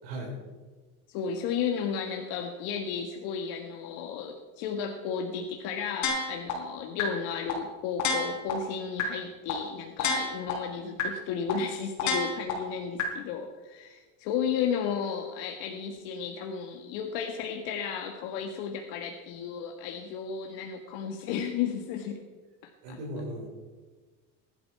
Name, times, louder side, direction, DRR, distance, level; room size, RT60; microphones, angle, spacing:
voice 1, 0.0-0.4 22.8-23.5, equal, 80° right, -5 dB, 4.7 m, -37 dB
voice 2, 1.1-22.2 22.9-23.0, left 7 dB, 70° left, 2 dB, 1.6 m, -33 dB
sound 1, 6.0-6.5 7.0-7.1 7.5-7.6 8.0-8.5 9.0-9.1 9.5-9.6 10.0-10.5 11.0-11.1 11.5-11.6 12.0-12.5 13.0-13.1, left 5 dB, 50° left, 3.9 m, -28 dB
20.0 x 12.0 x 4.8 m, 1.3 s
cardioid pair, 165°, 36 cm